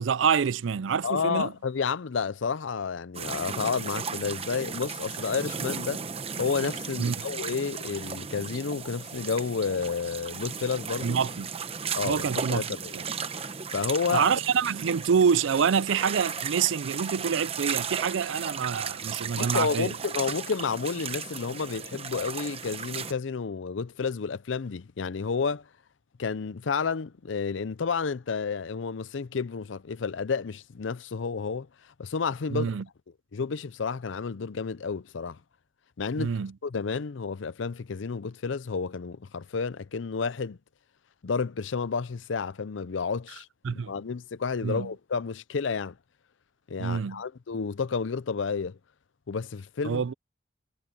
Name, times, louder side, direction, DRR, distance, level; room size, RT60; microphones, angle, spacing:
voice 1, 0.0-1.5 7.0-7.2 11.0-11.5 12.0-12.7 12.9-13.1 14.1-19.9 32.5-32.8 36.2-36.5 43.6-43.9 44.6-44.9 46.8-47.2 49.8-50.1, right 6 dB, 80° right, 0.4 m, -26 dB
voice 2, 1.0-6.0 6.4-11.2 11.9-12.9 13.7-14.3 19.4-25.6 26.2-31.7 32.0-32.7 33.3-35.4 36.0-36.3 36.6-40.6 41.2-46.0 46.7-48.8 49.3-50.0, left 5 dB, 80° left, 0.5 m, -31 dB
sound 1, 3.1-23.1, right 6 dB, 30° right, 1.0 m, -35 dB
head